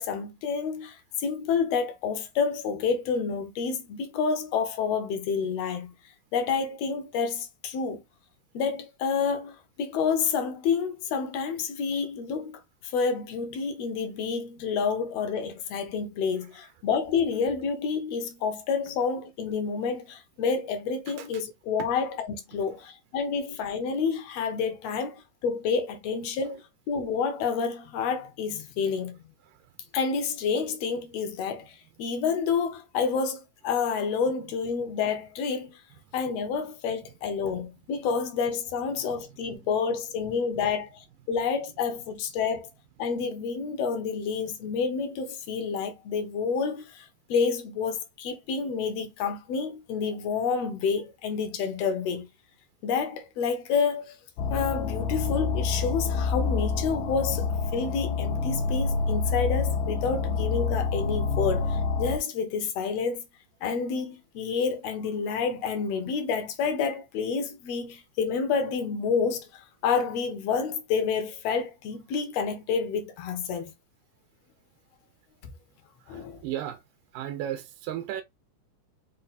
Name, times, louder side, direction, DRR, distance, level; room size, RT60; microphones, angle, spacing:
voice 1, 0.0-5.9 6.3-8.0 8.5-29.2 29.9-35.8 36.1-42.7 43.0-52.3 52.8-54.2 54.5-63.2 63.6-73.7 76.1-76.4, left 5 dB, 70° left, 1.7 m, -29 dB
voice 2, 16.4-16.7 21.1-21.4 21.8-21.9 22.7-22.8 29.4-29.8 38.9-39.2 76.0-76.8 77.1-78.2, right 11 dB, 85° right, 2.3 m, -37 dB
sound 1, 54.4-62.2, left 4 dB, 85° left, 2.2 m, -27 dB
5.6 x 2.2 x 4.1 m
omnidirectional pair, 3.7 m